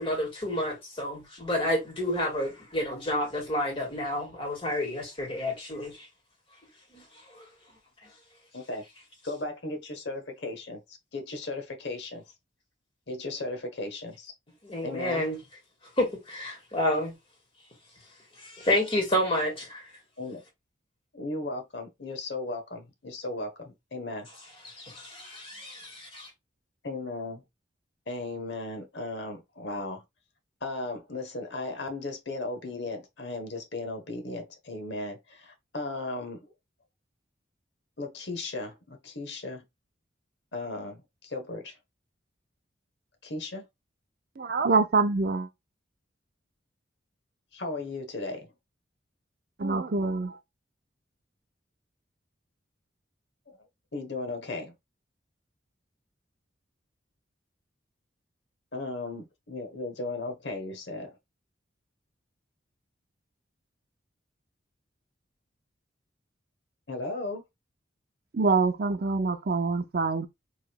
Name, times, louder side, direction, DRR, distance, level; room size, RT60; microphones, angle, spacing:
voice 1, 0.0-6.1 6.9-7.0 7.4-7.5 14.6-15.4 16.0-17.1 18.4-19.8 24.6-26.3, left 1 dB, 30° left, 1.7 m, -30 dB
voice 2, 8.5-8.8 9.2-12.2 13.1-14.3 14.8-15.3 20.2-20.4 21.1-24.3 26.8-27.4 28.1-30.0 30.6-36.5 38.0-39.6 40.5-41.8 43.2-43.7 47.5-48.5 53.5-53.6 53.9-54.7 58.7-61.2 66.9-67.4, left 2 dB, 65° left, 0.9 m, -36 dB
voice 3, 44.4-45.5 49.6-50.4 68.3-70.3, right 4 dB, 50° right, 0.5 m, -25 dB
4.8 x 3.1 x 2.2 m
head